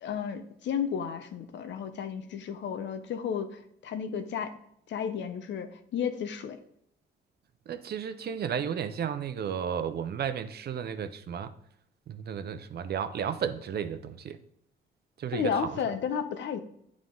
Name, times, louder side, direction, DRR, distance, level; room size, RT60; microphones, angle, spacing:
voice 1, 0.0-4.5 4.9-6.6 15.3-16.6, left 7 dB, 65° left, 0.8 m, -33 dB
voice 2, 7.7-11.5 12.1-14.4 15.2-15.8, right 8 dB, 55° right, 0.6 m, -33 dB
9.0 x 3.7 x 3.8 m
cardioid pair, 90°, 20 cm